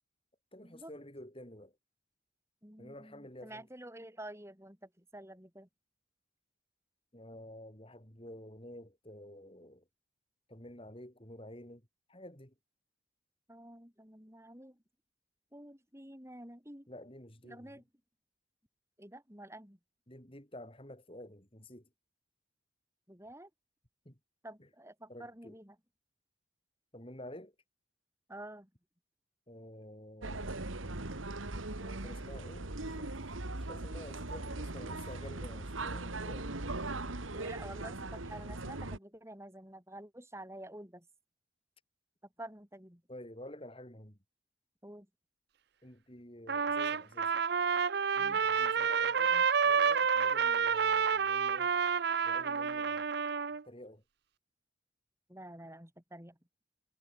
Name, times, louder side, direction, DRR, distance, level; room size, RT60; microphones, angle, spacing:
voice 1, 0.5-1.7 2.8-3.7 7.1-9.8 10.5-11.8 12.1-12.5 16.9-17.8 20.1-21.9 24.0-24.2 24.6-24.7 25.1-25.6 26.9-27.5 29.5-30.5 31.8-33.2 33.6-36.5 43.1-44.2 45.8-47.4 48.1-51.8 52.2-53.1 53.6-54.0, left 1 dB, 25° left, 4.9 m, -50 dB
voice 2, 2.6-5.7 13.5-14.8 15.5-16.9 17.4-17.8 19.0-19.8 23.1-23.5 24.4-25.8 28.3-28.7 37.3-41.1 42.4-43.0 44.8-45.1 48.2-48.4 55.3-56.4, right 1 dB, 15° right, 5.4 m, -49 dB
sound 1, 30.2-39.0, right 2 dB, 85° right, 2.3 m, -39 dB
Trumpet, 46.5-53.6, right 6 dB, 55° right, 0.6 m, -29 dB
head